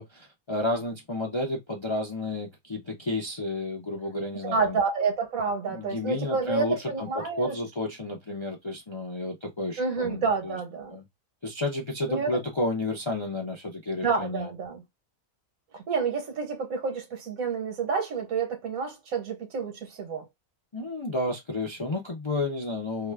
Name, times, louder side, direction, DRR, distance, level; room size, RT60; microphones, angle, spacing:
voice 1, 0.0-4.8 5.7-10.6 10.9-11.0 11.4-14.5 20.7-23.1, left 2 dB, 35° left, 0.4 m, -31 dB
voice 2, 4.4-7.5 9.8-11.0 12.1-12.4 14.0-14.8 15.7-20.2, right 5 dB, 80° right, 1.5 m, -29 dB
2.8 x 2.3 x 3.3 m
omnidirectional pair, 1.5 m